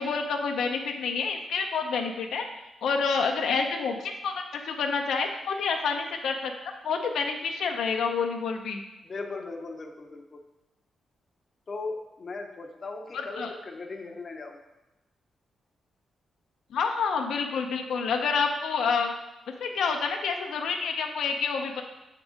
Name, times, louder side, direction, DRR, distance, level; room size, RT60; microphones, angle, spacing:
voice 1, 0.0-2.5 2.8-6.5 6.8-8.8 13.1-13.5 16.7-19.1 19.6-21.8, left 5 dB, 80° left, 3 dB, 0.6 m, -28 dB
voice 2, 9.0-10.4 11.7-14.6, left 3 dB, 35° left, 2 dB, 0.6 m, -38 dB
6.2 x 3.7 x 4.9 m, 0.98 s
cardioid pair, 130°, 0 cm